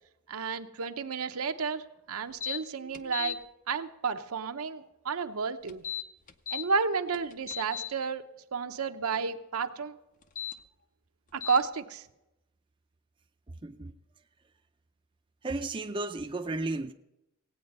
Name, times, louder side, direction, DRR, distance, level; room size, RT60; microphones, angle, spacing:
voice 1, 0.3-3.4 3.7-5.8 6.5-8.2 8.5-10.0 11.3-12.0, right 5 dB, 80° right, 0.7 m, -31 dB
sound 1, 2.4-2.6 2.9-3.4 5.7-6.6 7.1-7.9 10.2-10.5 11.4-11.6, left 10 dB, 35° left, 0.5 m, -36 dB
voice 2, 13.6-13.9 15.4-16.9, right 2 dB, 20° right, 0.4 m, -33 dB
17.0 x 8.8 x 5.3 m
head